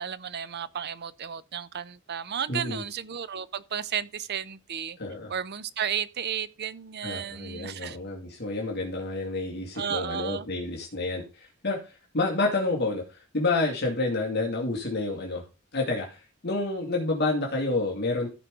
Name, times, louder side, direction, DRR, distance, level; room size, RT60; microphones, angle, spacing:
voice 1, 0.0-5.0 5.3-8.0 9.7-10.5, right 8 dB, 50° right, 0.6 m, -33 dB
voice 2, 2.5-2.8 5.0-5.3 7.0-15.4 15.7-18.3, left 2 dB, 50° left, 2.3 m, -29 dB
15.0 x 5.3 x 3.7 m
head